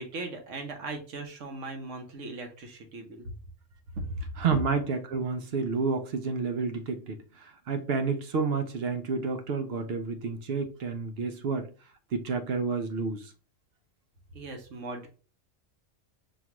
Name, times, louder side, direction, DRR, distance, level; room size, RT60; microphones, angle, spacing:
voice 1, 0.0-3.4 3.9-4.3 4.5-4.6 14.3-15.1, right 2 dB, 80° right, 1.3 m, -37 dB
voice 2, 4.4-11.7 12.1-13.3, right 4 dB, 65° right, 0.7 m, -30 dB
5.6 x 2.3 x 3.0 m
omnidirectional pair, 1.3 m